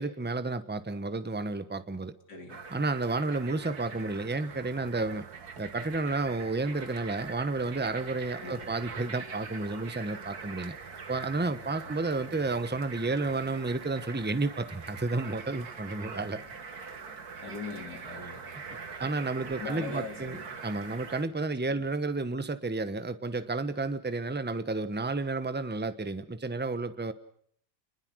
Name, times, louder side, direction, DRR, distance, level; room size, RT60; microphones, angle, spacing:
voice 1, 0.0-2.1 2.7-5.2 5.6-10.8 11.1-16.4 19.0-20.4 20.6-27.1, right 3 dB, 10° right, 12 dB, 0.8 m, -31 dB
voice 2, 2.3-2.6 8.4-8.7 12.1-12.3 17.4-18.4 19.6-20.5 21.7-21.8, left 4 dB, 60° left, 4 dB, 4.4 m, -41 dB
sound 1, 2.5-21.2, right 5 dB, 55° right, 2.4 m, -43 dB
28.5 x 21.0 x 6.4 m, 0.64 s
omnidirectional pair, 2.0 m